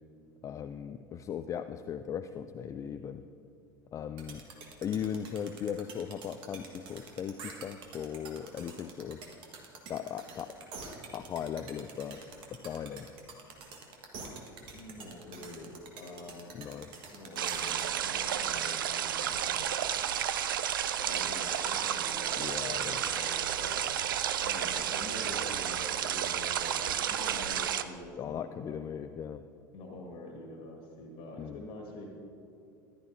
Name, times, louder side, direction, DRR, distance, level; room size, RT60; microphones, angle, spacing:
voice 1, 0.4-3.2 3.9-4.4 4.8-9.2 9.9-10.5 11.1-12.2 12.5-13.1 16.5-16.9 22.4-23.1 28.2-29.4 31.4-31.6, left 8 dB, 30° left, 9 dB, 0.3 m, -38 dB
sound 1, 4.2-17.8, right 4 dB, 50° right, 1.6 m, -46 dB
voice 2, 14.7-16.5 17.1-19.7 21.1-23.9 24.4-28.8 29.7-32.1, left 1 dB, 50° left, 0 dB, 1.7 m, -45 dB
sound 2, 17.4-27.8, right 10 dB, 75° right, 0.4 m, -31 dB
14.5 x 11.5 x 2.7 m, 2.5 s
figure-of-eight pair, 75°, 11 cm